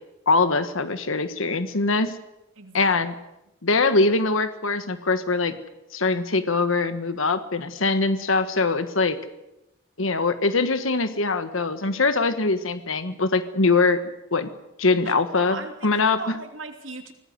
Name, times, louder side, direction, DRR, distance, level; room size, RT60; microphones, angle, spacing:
voice 1, 0.3-2.1 2.7-3.1 3.6-5.5 5.9-9.2 10.0-14.0 14.3-14.5 14.8-16.2, left 3 dB, 80° left, 10 dB, 1.4 m, -22 dB
voice 2, 2.6-3.0 15.0-17.1, right 3 dB, 75° right, 4 dB, 3.0 m, -38 dB
25.0 x 18.0 x 8.0 m, 0.92 s
head